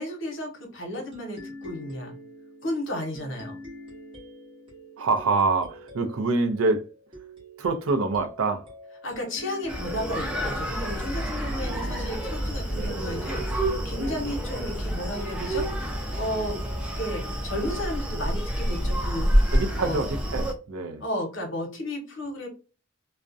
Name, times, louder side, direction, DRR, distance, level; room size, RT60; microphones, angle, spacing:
voice 1, 0.0-2.2 2.6-3.6 9.0-15.6 16.1-16.6 17.0-19.4 19.8-20.0 21.0-22.5, left 1 dB, 60° left, 0.8 m, -33 dB
sound 1, 1.1-18.3, right 1 dB, 25° right, 0.9 m, -46 dB
voice 2, 5.0-6.8 7.6-8.6 11.7-12.1 12.7-13.0 14.0-14.1 19.5-21.0, right 3 dB, 85° right, 0.5 m, -26 dB
Screaming, 9.7-20.5, equal, 5° right, 0.3 m, -28 dB
2.3 x 2.1 x 2.5 m
head